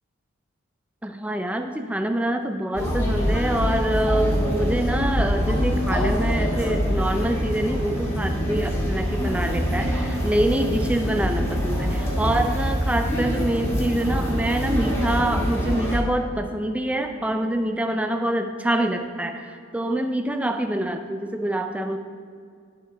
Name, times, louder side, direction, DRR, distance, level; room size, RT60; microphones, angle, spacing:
voice 1, 1.0-22.0, right 1 dB, 5° right, 6 dB, 0.4 m, -25 dB
sound 1, 2.7-16.0, equal, 15° left, 1.8 m, -24 dB
11.0 x 7.5 x 3.4 m, 2.3 s
head